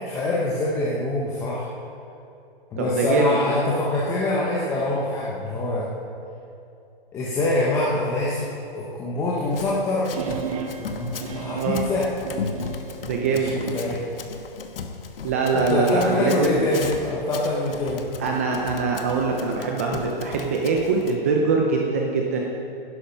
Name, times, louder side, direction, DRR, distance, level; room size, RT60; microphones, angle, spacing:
voice 1, 0.1-1.7 2.7-5.9 7.1-8.5 8.7-10.1 10.8-12.0 13.4-13.5 13.7-14.1 15.5-18.1, left 2 dB, 10° left, -5 dB, 0.8 m, -25 dB
voice 2, 2.8-3.6 11.5-11.8 13.0-13.5 15.2-16.6 18.2-22.4, right 4 dB, 15° right, 0 dB, 0.4 m, -23 dB
Run, 9.5-21.1, left 5 dB, 70° left, 1.2 m, -37 dB
sound 1, 10.1-13.9, right 6 dB, 35° right, 0.9 m, -34 dB
11.5 x 11.0 x 5.2 m, 2.6 s
hypercardioid pair, 160°, 30 cm